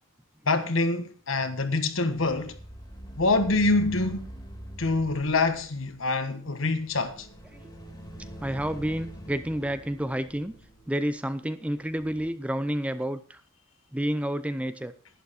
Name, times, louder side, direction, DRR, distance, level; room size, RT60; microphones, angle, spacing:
voice 1, 0.5-2.5 3.2-4.2 4.8-7.3, left 3 dB, 65° left, 1.4 m, -25 dB
sound 1, 1.9-12.3, right 1 dB, 20° left, 2.4 m, -44 dB
voice 2, 8.4-10.5 10.9-13.4 13.9-14.9, equal, 5° right, 0.5 m, -30 dB
11.5 x 11.0 x 4.2 m
head